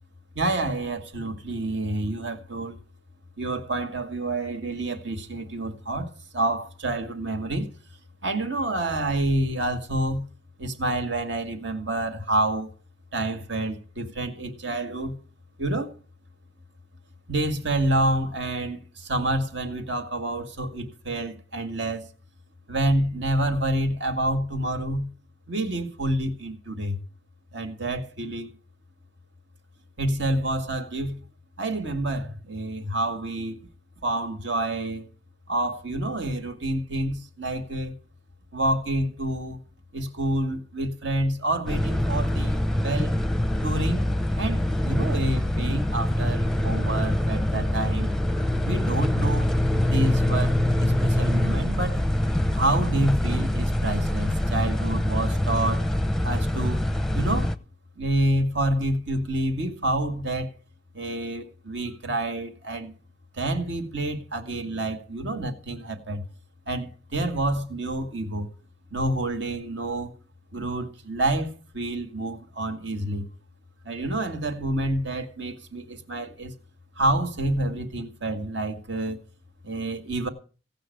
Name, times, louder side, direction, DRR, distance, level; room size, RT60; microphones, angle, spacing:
voice 1, 0.4-2.8 3.4-7.7 8.2-10.2 10.6-12.7 13.1-15.2 15.6-15.9 17.3-22.1 22.7-25.1 25.5-27.0 27.5-28.5 30.0-31.2 31.6-33.6 34.0-35.0 35.5-37.9 38.5-39.6 39.9-43.2 43.6-44.1 44.4-48.1 48.6-49.5 49.8-52.0 52.5-55.9 56.2-56.8 57.1-57.5 58.0-60.5 60.9-62.9 63.4-66.2 66.7-68.5 68.9-70.1 70.5-73.3 73.9-76.5 77.0-79.2 79.6-80.3, right 1 dB, 70° right, 2.2 m, -28 dB
sound 1, 41.7-57.6, left 1 dB, ahead, 0.7 m, -24 dB
17.0 x 6.0 x 9.3 m
head